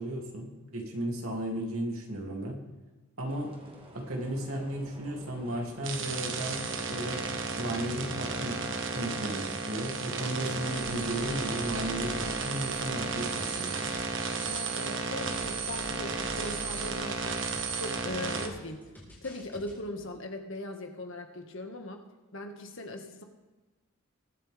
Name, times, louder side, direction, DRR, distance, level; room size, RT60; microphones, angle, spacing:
voice 1, 0.0-2.6 3.2-3.5 3.9-7.2 7.6-8.6 8.9-13.8, right 1 dB, 75° right, 0 dB, 2.8 m, -35 dB
sound 1, 3.3-16.6, right 1 dB, 25° right, 2.0 m, -50 dB
sound 2, 5.8-18.5, right 4 dB, 60° right, 1.5 m, -33 dB
sound 3, 10.6-19.7, left 1 dB, 10° left, 4.3 m, -47 dB
voice 2, 14.4-17.4 17.7-18.8 19.2-22.0 22.3-23.2, left 1 dB, 60° left, 4 dB, 1.7 m, -39 dB
22.0 x 9.0 x 3.5 m, 1.2 s
head